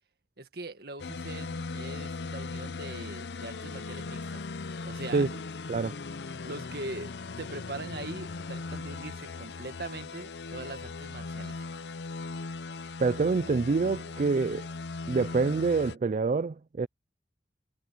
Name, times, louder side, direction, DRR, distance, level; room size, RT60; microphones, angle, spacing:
voice 1, 0.4-5.4 5.9-6.0 6.5-11.6, right 2 dB, 60° right, 2.0 m, -42 dB
sound 1, 1.0-16.0, left 4 dB, 75° left, 0.6 m, -39 dB
voice 2, 13.0-14.7 15.1-16.9, right 4 dB, 45° right, 0.4 m, -26 dB
head